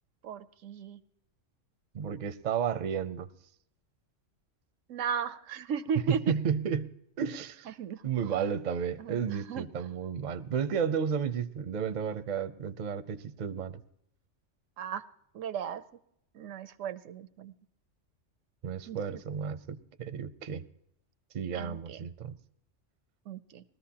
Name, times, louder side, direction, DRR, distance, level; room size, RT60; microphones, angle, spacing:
voice 1, 0.2-1.0 4.9-6.2 7.8-8.0 9.0-9.7 14.8-15.0 15.3-15.8 16.3-17.5 18.9-19.2 21.5-22.0 23.3-23.6, right 7 dB, 90° right, 13 dB, 1.0 m, -36 dB
voice 2, 1.9-3.3 5.9-7.7 8.0-13.8 18.6-20.7 21.3-22.4, right 7 dB, 45° right, 11 dB, 0.6 m, -32 dB
20.0 x 14.0 x 2.8 m, 0.76 s
omnidirectional pair, 1.3 m